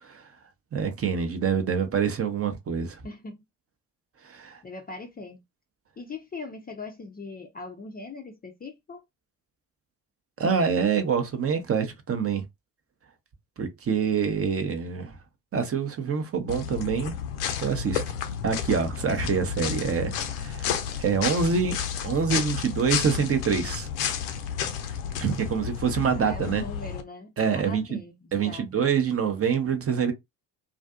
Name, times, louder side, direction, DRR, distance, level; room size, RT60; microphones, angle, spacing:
voice 1, 0.7-3.0 4.2-4.6 10.4-12.4 13.6-15.1 15.5-17.1 17.6-18.0 18.4-21.8 22.0-23.9 25.2-26.6 27.4-28.0 28.3-30.1, right 6 dB, 30° right, 0.6 m, -26 dB
voice 2, 3.0-3.4 4.6-5.4 6.0-9.0 26.2-28.9, left 3 dB, 20° left, 0.5 m, -40 dB
sound 1, 16.5-27.0, left 8 dB, 75° left, 0.6 m, -31 dB
2.5 x 2.4 x 2.3 m
hypercardioid pair, 55°, 47 cm